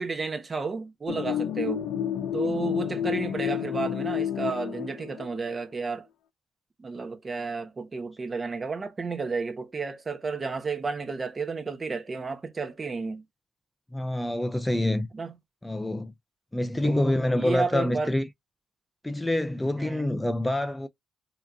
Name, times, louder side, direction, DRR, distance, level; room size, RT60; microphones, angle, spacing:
voice 1, 0.0-1.8 2.3-6.1 6.8-13.2 15.1-15.3 16.8-18.1 19.8-20.1, right 4 dB, 30° right, 1.0 m, -32 dB
sound 1, 1.1-5.5, left 9 dB, 85° left, 0.6 m, -30 dB
voice 2, 13.9-15.1 15.6-16.1 16.5-18.3 19.0-20.9, left 1 dB, 10° left, 0.5 m, -26 dB
4.8 x 2.9 x 2.6 m
cardioid pair, 90°, 0 cm